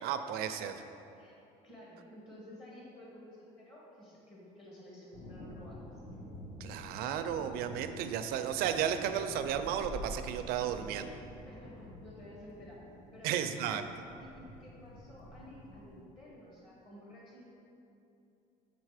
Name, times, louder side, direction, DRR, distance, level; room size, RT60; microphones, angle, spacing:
voice 1, 0.0-0.7 6.6-11.2 13.2-13.8, right 9 dB, 75° right, 9 dB, 0.4 m, -33 dB
voice 2, 1.2-5.9 11.4-12.8 13.1-13.8 14.2-17.4, left 1 dB, 35° left, -5 dB, 1.5 m, -53 dB
sound 1, 5.1-16.0, equal, 55° left, 1.2 m, -48 dB
6.6 x 4.0 x 4.9 m, 2.8 s
cardioid pair, 120°, 16 cm